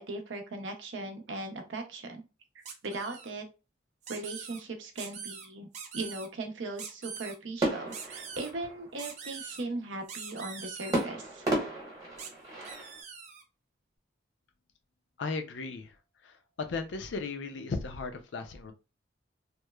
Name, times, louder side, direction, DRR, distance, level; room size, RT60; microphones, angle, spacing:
voice 1, 0.0-2.3 2.5-3.5 4.1-5.7 5.9-11.5, right 2 dB, 80° right, 5 dB, 0.6 m, -38 dB
sound 1, 2.6-3.3 4.0-4.6 5.0-5.5 5.7-6.3 6.8-7.3 7.9-8.5 9.0-9.6 10.1-11.0 12.2-12.3 12.6-13.4, right 6 dB, 40° right, 0.4 m, -43 dB
sound 2, 7.6-9.2 10.9-13.0, right 1 dB, 20° right, 0.9 m, -33 dB
voice 2, 15.2-15.9 16.2-18.7, left 4 dB, 70° left, 7 dB, 0.4 m, -36 dB
2.9 x 2.0 x 2.2 m, 0.29 s
head